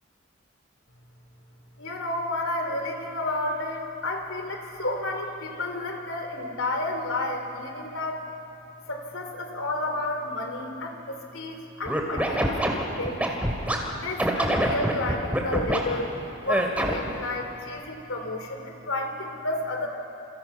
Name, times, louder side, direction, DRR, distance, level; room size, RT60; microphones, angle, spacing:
voice 1, 1.8-8.3 8.9-13.2 13.9-16.1 16.4-19.9, left 2 dB, 90° left, 4 dB, 3.6 m, -31 dB
Scratching (performance technique), 11.8-13.8 14.2-15.8 16.5-17.1, right 1 dB, 5° right, 2.3 m, -24 dB
28.0 x 26.5 x 5.8 m, 3.0 s
head